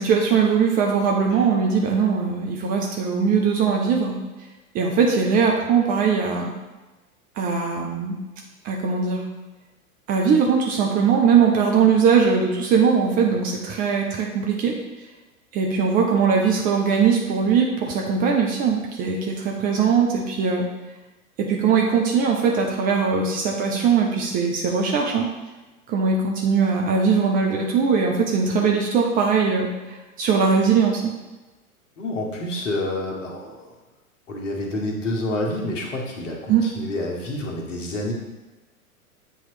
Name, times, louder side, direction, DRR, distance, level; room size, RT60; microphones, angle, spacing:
voice 1, 0.0-4.2 4.7-6.5 7.4-8.2 8.6-9.2 10.1-14.8 15.5-20.7 21.4-25.3 25.9-31.1 36.5-36.6, right 6 dB, 20° right, 0 dB, 0.5 m, -20 dB
voice 2, 32.0-33.7 34.3-38.1, left 1 dB, 60° left, 0 dB, 1.5 m, -28 dB
7.6 x 3.0 x 4.8 m, 1.1 s
figure-of-eight pair, 95°, 43 cm